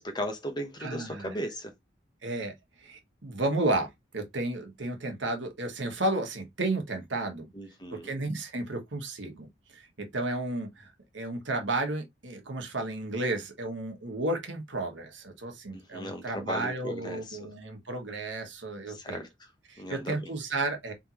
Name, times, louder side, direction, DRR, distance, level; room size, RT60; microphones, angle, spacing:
voice 1, 0.0-1.7 7.5-8.1 15.7-17.4 18.9-19.5 19.8-20.3, equal, 20° left, 1.0 m, -37 dB
voice 2, 0.8-1.3 2.2-7.5 7.9-9.5 9.7-19.2 19.7-20.9, right 2 dB, 75° right, 1.4 m, -33 dB
4.1 x 3.5 x 3.0 m
head